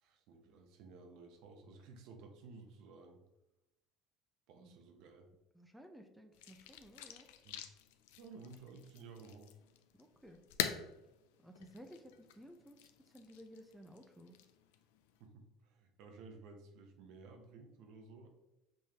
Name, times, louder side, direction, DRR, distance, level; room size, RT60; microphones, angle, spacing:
voice 1, 0.0-3.2 4.5-5.3 7.4-7.6 8.2-9.5 15.2-18.3, right 4 dB, 70° right, 4 dB, 0.8 m, -55 dB
voice 2, 4.5-4.8 5.5-7.3 10.0-10.4 11.4-14.4, equal, 5° right, 4 dB, 0.5 m, -56 dB
sound 1, 6.3-15.3, left 10 dB, 85° left, 0.3 m, -46 dB
5.4 x 3.2 x 2.8 m, 0.94 s
supercardioid pair, 85°, 0 cm